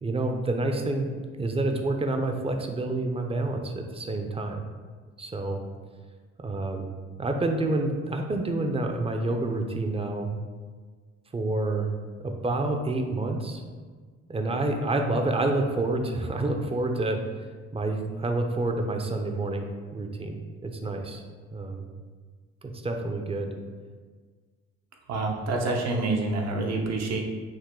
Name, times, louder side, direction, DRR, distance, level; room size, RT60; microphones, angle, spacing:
voice 1, 0.0-1.1 1.4-4.6 5.2-5.6 6.4-6.9 7.2-10.3 11.3-11.9 12.2-13.6 14.3-17.2 17.7-19.7 19.9-20.4 20.6-21.2 21.5-21.8 22.7-23.5, right 2 dB, 20° right, 4 dB, 0.5 m, -28 dB
voice 2, 25.1-27.2, right 2 dB, 60° right, 1 dB, 0.8 m, -27 dB
6.2 x 2.1 x 3.6 m, 1.5 s
cardioid pair, 90°, 30 cm